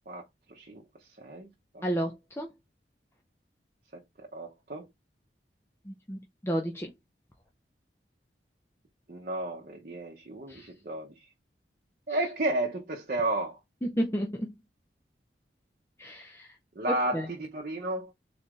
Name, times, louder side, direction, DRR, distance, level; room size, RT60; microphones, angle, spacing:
voice 1, 0.5-0.8 1.2-1.5 1.7-1.9 3.9-4.0 4.3-4.9 9.1-11.1 12.1-13.6 16.8-18.1, right 2 dB, 50° right, 0.9 m, -32 dB
voice 2, 1.8-2.5 5.9-6.9 10.5-10.7 12.1-12.2 13.8-14.5 16.0-16.5 17.1-17.3, equal, 15° left, 0.6 m, -32 dB
4.0 x 3.3 x 3.7 m
head